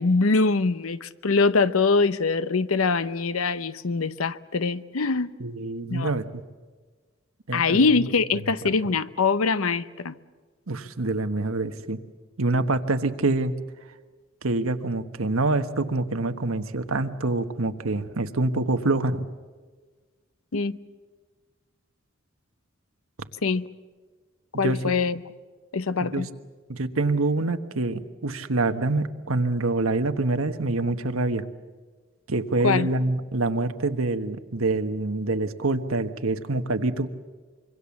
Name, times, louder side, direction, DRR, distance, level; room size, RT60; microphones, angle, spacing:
voice 1, 0.0-5.3 5.9-6.1 7.5-10.1 20.5-20.8 23.4-23.7 24.6-25.2 25.7-26.3 32.6-32.9, left 4 dB, 90° left, 0.8 m, -23 dB
voice 2, 5.4-6.2 7.5-7.9 10.7-12.0 12.4-13.5 14.4-19.3 24.5-24.8 26.0-26.3 26.7-31.4 32.3-37.1, right 2 dB, 85° right, 1.3 m, -26 dB
25.5 x 23.5 x 7.2 m
head